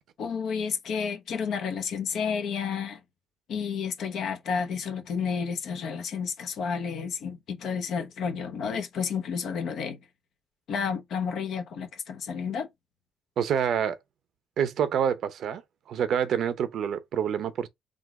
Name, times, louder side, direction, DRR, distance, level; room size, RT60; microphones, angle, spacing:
voice 1, 0.2-3.0 3.5-10.0 10.7-12.7, left 6 dB, 75° left, 0.9 m, -31 dB
voice 2, 13.4-14.0 14.6-15.6 15.9-17.7, right 8 dB, 70° right, 0.7 m, -27 dB
3.8 x 2.5 x 4.6 m
cardioid pair, 90°, 0 cm